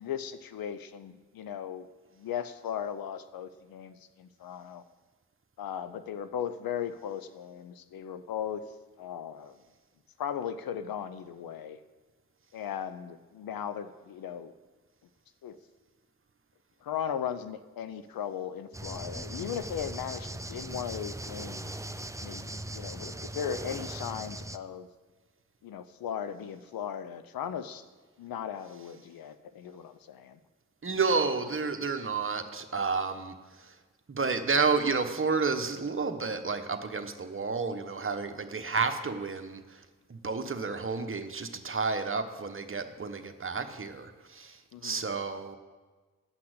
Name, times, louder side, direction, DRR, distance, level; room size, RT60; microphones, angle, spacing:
voice 1, 0.0-1.9 2.2-4.8 5.6-8.6 9.0-9.5 10.2-11.8 12.5-14.5 15.4-15.6 16.8-21.7 22.2-24.9 25.6-27.8 28.2-30.4 44.7-45.0, left 8 dB, 80° left, 12 dB, 0.7 m, -37 dB
sound 1, 18.7-24.6, right 1 dB, 10° right, 0.5 m, -39 dB
voice 2, 30.8-33.7 34.1-39.8 40.1-45.6, right 4 dB, 35° right, 7 dB, 1.1 m, -31 dB
9.7 x 5.9 x 8.0 m, 1.3 s
supercardioid pair, 40°, 35 cm